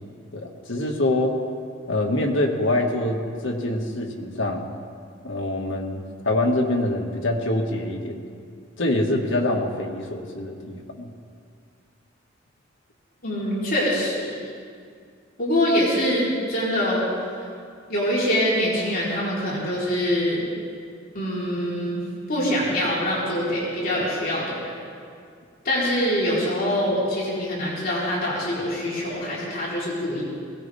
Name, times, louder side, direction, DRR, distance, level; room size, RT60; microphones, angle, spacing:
voice 1, 0.3-1.4 1.9-4.7 5.2-8.2 8.8-11.1, left 1 dB, 75° left, 1 dB, 2.0 m, -25 dB
voice 2, 13.2-14.4 15.4-17.1 17.9-20.4 21.1-24.8 25.6-30.2, equal, 50° left, -7 dB, 4.0 m, -24 dB
21.5 x 17.5 x 3.6 m, 2.3 s
head